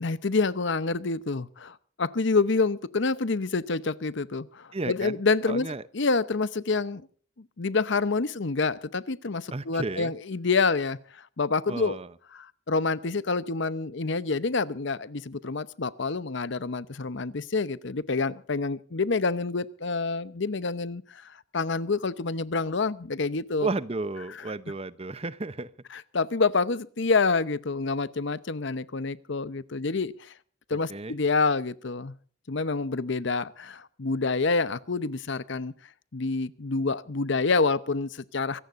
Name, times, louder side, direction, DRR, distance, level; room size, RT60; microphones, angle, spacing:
voice 1, 0.0-5.7 5.9-7.0 7.6-12.0 12.3-23.7 25.9-30.3 30.7-32.1 32.5-35.7 36.1-38.6, left 4 dB, 60° left, 16 dB, 0.8 m, -27 dB
voice 2, 4.7-5.2 5.5-5.8 9.5-10.1 11.7-12.1 23.6-25.7 30.9-31.2, right 2 dB, 30° right, 16 dB, 0.7 m, -32 dB
24.5 x 17.5 x 2.6 m, 0.44 s
head